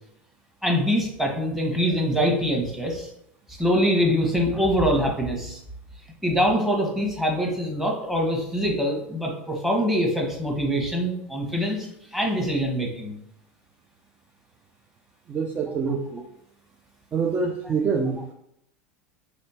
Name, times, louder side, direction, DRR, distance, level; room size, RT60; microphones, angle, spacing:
voice 1, 0.6-3.1 3.5-5.6 6.2-13.2, equal, 5° right, 0 dB, 1.2 m, -24 dB
voice 2, 15.3-16.2 17.1-18.3, right 5 dB, 25° right, 2 dB, 0.5 m, -26 dB
4.3 x 3.3 x 2.8 m, 0.75 s
hypercardioid pair, 85°, 7 cm